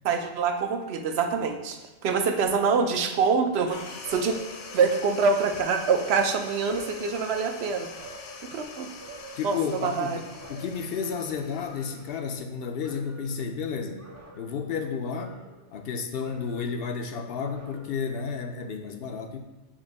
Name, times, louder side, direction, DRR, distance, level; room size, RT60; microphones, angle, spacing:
voice 1, 0.0-4.4 4.7-7.9 8.5-8.9 9.4-10.2, right 5 dB, 65° right, 6 dB, 0.8 m, -25 dB
sound 1, 2.4-3.7 4.0-5.1 5.5-7.6 7.9-8.5 9.0-10.1 10.4-12.5 12.8-13.5 14.0-14.8 15.1-15.9 16.2-16.9 17.4-18.2 18.5-18.7, right 2 dB, 30° right, 0.3 m, -48 dB
sound 2, 3.6-12.5, left 4 dB, 80° left, 1.0 m, -44 dB
voice 2, 9.4-14.0 14.3-15.4 15.7-19.4, left 6 dB, 60° left, 5 dB, 0.7 m, -32 dB
7.2 x 2.6 x 5.2 m, 1.1 s
omnidirectional pair, 1.2 m